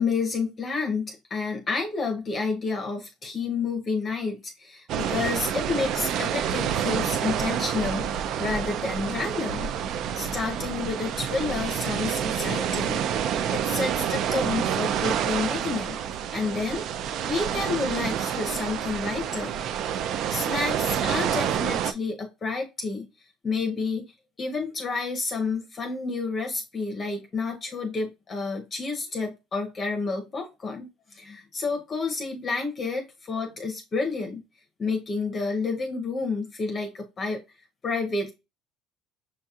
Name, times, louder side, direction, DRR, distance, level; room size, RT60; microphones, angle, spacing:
voice 1, 0.0-16.0 16.3-16.8 17.2-19.6 20.3-23.1 23.4-24.0 24.4-30.9 31.2-34.4 34.8-37.4 37.8-38.3, left 4 dB, 25° left, 3 dB, 0.6 m, -30 dB
sound 1, 4.9-21.9, right 9 dB, 50° right, 0.3 m, -28 dB
6.3 x 2.8 x 2.3 m, 0.26 s
cardioid pair, 150°, 0 cm